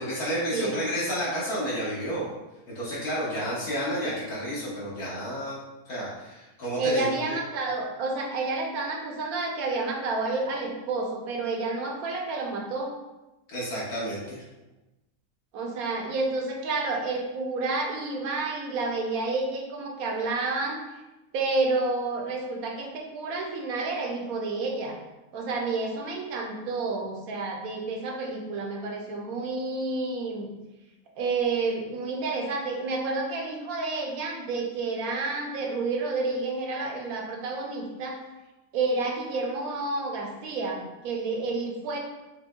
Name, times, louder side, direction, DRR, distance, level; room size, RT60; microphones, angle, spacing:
voice 1, 0.0-2.3 2.7-7.1 13.5-14.4, equal, 75° left, -8 dB, 1.9 m, -31 dB
voice 2, 6.8-12.9 15.5-21.0 21.3-25.0 25.3-30.5 31.2-38.2 38.7-42.0, right 3 dB, 70° right, 1 dB, 1.1 m, -30 dB
5.9 x 2.2 x 2.3 m, 1.0 s
omnidirectional pair, 1.7 m